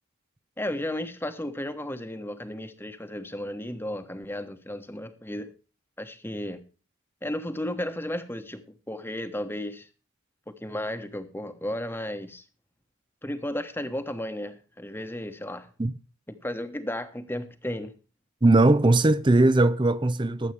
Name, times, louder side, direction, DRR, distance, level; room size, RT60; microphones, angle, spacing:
voice 1, 0.6-5.5 6.0-6.6 7.2-9.9 10.5-12.4 13.2-15.7 16.3-17.9, left 1 dB, 10° left, 1.2 m, -34 dB
voice 2, 18.4-20.5, right 2 dB, 20° right, 0.5 m, -19 dB
22.5 x 8.2 x 3.3 m
head